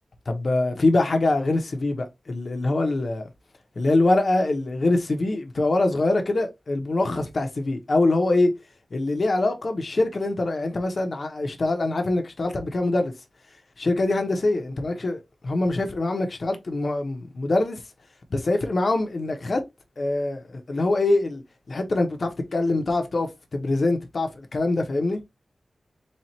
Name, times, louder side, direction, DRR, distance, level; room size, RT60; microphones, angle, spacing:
voice 1, 0.3-3.2 3.8-8.5 8.9-13.1 13.8-17.8 18.3-19.6 20.0-21.4 21.7-25.2, left 2 dB, 55° left, 0.8 m, -24 dB
4.2 x 2.4 x 3.0 m
wide cardioid pair, 100°, 0 cm